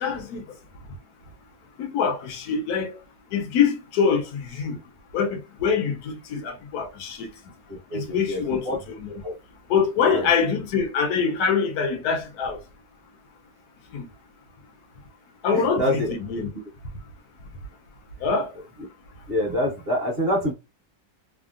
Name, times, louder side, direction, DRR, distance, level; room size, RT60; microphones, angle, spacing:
voice 1, 0.0-0.4 1.8-3.0 3.3-4.8 5.1-7.3 7.9-8.6 9.0-9.2 9.7-12.6 13.9-14.0 15.4-16.5 18.2-18.5, left 6 dB, 65° left, 1.0 m, -24 dB
voice 2, 7.7-8.8 9.2-9.3 10.0-10.3 15.5-16.1 19.3-20.5, left 1 dB, 35° right, 1.1 m, -26 dB
3.4 x 2.1 x 2.4 m
omnidirectional pair, 2.0 m